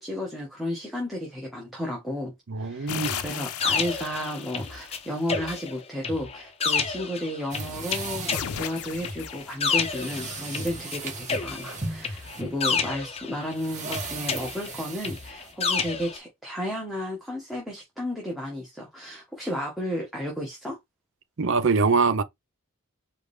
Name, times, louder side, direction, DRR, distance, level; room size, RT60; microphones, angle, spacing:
voice 1, 0.0-20.8, left 1 dB, ahead, 1.2 m, -33 dB
voice 2, 2.5-3.2 21.4-22.2, right 4 dB, 60° right, 0.6 m, -23 dB
sound 1, 2.9-5.2 8.3-10.4, left 8 dB, 90° left, 0.6 m, -36 dB
sound 2, 3.0-5.0 5.3-11.0 11.3-13.5 13.9-16.2, left 5 dB, 30° left, 0.7 m, -30 dB
sound 3, 7.5-16.1, right 3 dB, 35° right, 1.2 m, -38 dB
4.8 x 2.6 x 3.3 m
head